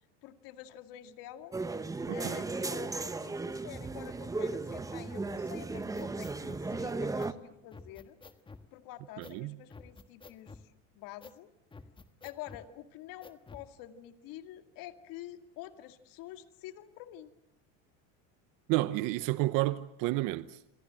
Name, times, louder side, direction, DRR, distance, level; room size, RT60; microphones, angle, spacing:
voice 1, 0.2-1.5 2.1-8.2 8.7-11.5 12.2-17.3, left 13 dB, 60° left, 2.3 m, -48 dB
sound 1, 1.5-7.3, right 3 dB, 10° right, 1.0 m, -36 dB
voice 2, 2.1-2.4 9.2-9.6 18.7-20.6, right 18 dB, 60° right, 1.0 m, -31 dB
sound 2, 5.7-6.7 7.2-7.3 7.7-8.7 9.2-9.4 9.7-10.7 11.2-11.4 11.7-12.7 13.2-13.7, left 4 dB, 15° left, 1.4 m, -50 dB
27.5 x 25.5 x 7.7 m
cardioid pair, 135°, 38 cm